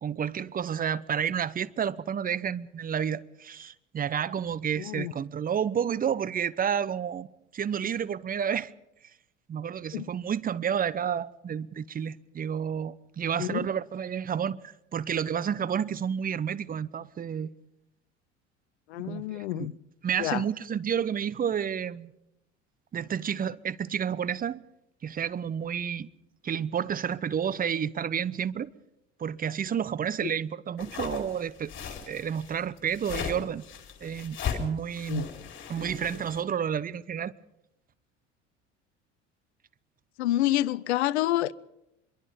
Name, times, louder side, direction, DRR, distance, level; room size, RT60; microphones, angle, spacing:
voice 1, 0.0-7.3 7.5-8.7 9.5-17.5 19.0-19.7 20.0-22.1 22.9-24.6 25.0-26.1 26.4-28.7 29.2-33.6 34.0-35.3 35.7-37.3, right 8 dB, 25° right, 0.9 m, -30 dB
voice 2, 4.8-5.1 9.9-10.1 13.4-13.7 18.9-19.7 20.2-20.4 30.2-30.3 35.1-35.3 40.2-41.5, left 15 dB, 65° left, 0.7 m, -28 dB
sound 1, 30.8-36.4, left 8 dB, 35° left, 4.5 m, -37 dB
25.0 x 23.0 x 5.2 m
figure-of-eight pair, 65°, 36 cm